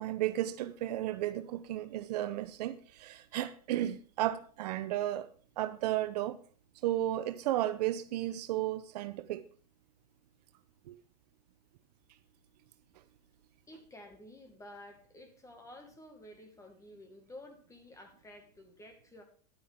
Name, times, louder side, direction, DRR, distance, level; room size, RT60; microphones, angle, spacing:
voice 1, 0.0-5.3 5.6-6.4 6.8-9.5 10.9-11.0, right 13 dB, 75° right, 0.8 m, -33 dB
voice 2, 13.7-19.2, left 1 dB, 15° left, 1.9 m, -52 dB
10.5 x 8.6 x 3.6 m
hypercardioid pair, 115°, 21 cm